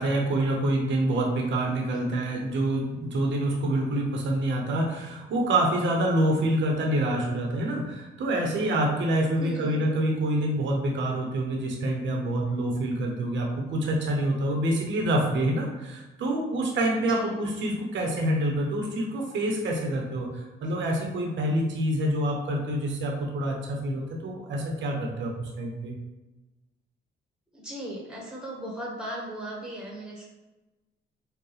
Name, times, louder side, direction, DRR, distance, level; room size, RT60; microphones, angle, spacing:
voice 1, 0.0-25.9, right 1 dB, 70° right, 1 dB, 0.9 m, -27 dB
voice 2, 1.9-2.2 9.4-9.8 17.1-17.5 27.5-30.3, equal, 5° right, -4 dB, 1.5 m, -37 dB
4.6 x 2.3 x 3.3 m, 1.1 s
cardioid pair, 90°, 20 cm